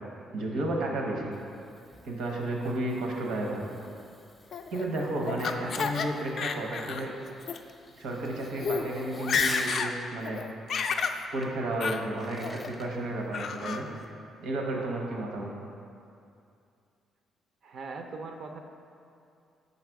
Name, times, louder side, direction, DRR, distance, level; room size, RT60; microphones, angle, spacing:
voice 1, 0.3-1.3 2.0-3.6 4.7-7.1 8.0-10.4 11.3-13.9 14.4-15.5, right 1 dB, 85° right, 0 dB, 0.8 m, -32 dB
Fireworks, 1.1-9.9 11.4-11.5 12.0-12.9, left 2 dB, 20° left, 0.6 m, -47 dB
Laughter, 4.5-6.1 6.4-7.0 7.4-7.6 8.2-8.3 8.6-8.8 9.1-9.9 10.2-11.2 11.8-12.0 12.4-12.9 13.3-13.8, left 5 dB, 60° left, 0.3 m, -30 dB
voice 2, 5.5-5.9 6.8-7.2 17.6-18.6, right 4 dB, 60° right, 4 dB, 0.4 m, -42 dB
5.7 x 4.0 x 4.6 m, 2.5 s
cardioid pair, 90°, 0 cm